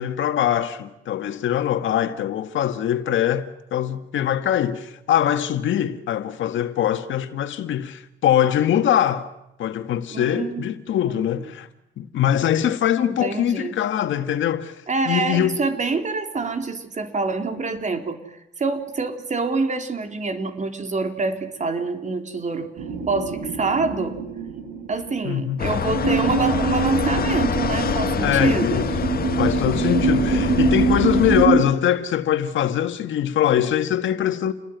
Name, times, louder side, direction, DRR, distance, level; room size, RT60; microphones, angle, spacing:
voice 1, 0.0-9.3 9.6-11.7 12.0-14.7 15.1-15.6 25.2-25.6 28.2-28.9 29.4-34.5, left 10 dB, 75° left, 1.9 m, -22 dB
voice 2, 10.1-10.6 11.1-11.2 13.2-13.7 14.9-18.2 18.6-22.7 23.1-24.2 24.9-28.9, right 4 dB, 40° right, 3.9 m, -26 dB
sound 1, 22.8-31.6, right 4 dB, 85° right, 4.6 m, -24 dB
sound 2, 25.6-31.5, left 7 dB, 50° left, 1.6 m, -26 dB
29.5 x 20.5 x 9.5 m
cardioid pair, 90°, 20 cm